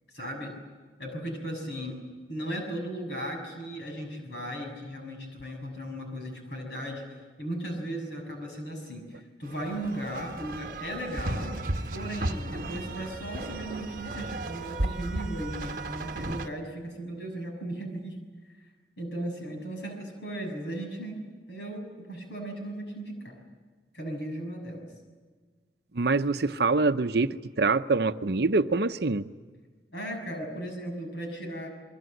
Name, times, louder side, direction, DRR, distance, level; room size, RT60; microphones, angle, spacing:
voice 1, 0.1-0.5 1.0-2.0 2.3-11.6 11.9-18.2 19.0-21.2 21.5-23.3 23.9-24.9 29.9-31.7, right 1 dB, 80° left, 3 dB, 6.6 m, -36 dB
sound 1, 9.5-16.5, right 1 dB, 50° right, 1.2 m, -34 dB
voice 2, 25.9-29.3, right 3 dB, 65° right, 9 dB, 0.7 m, -25 dB
26.5 x 22.5 x 7.9 m, 1.4 s
head